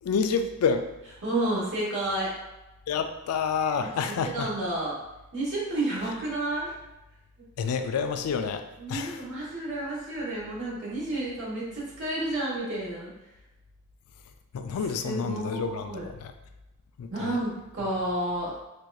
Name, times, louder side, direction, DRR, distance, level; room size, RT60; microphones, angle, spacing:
voice 1, 0.0-0.9 2.9-4.5 7.6-9.2 14.5-16.3 17.0-17.4, left 6 dB, 80° left, 7 dB, 0.3 m, -29 dB
voice 2, 1.2-2.3 3.8-4.9 5.3-6.7 8.8-13.1 15.0-16.0 17.1-18.6, right 1 dB, 60° right, -5 dB, 1.2 m, -31 dB
4.4 x 2.5 x 2.3 m, 0.97 s
head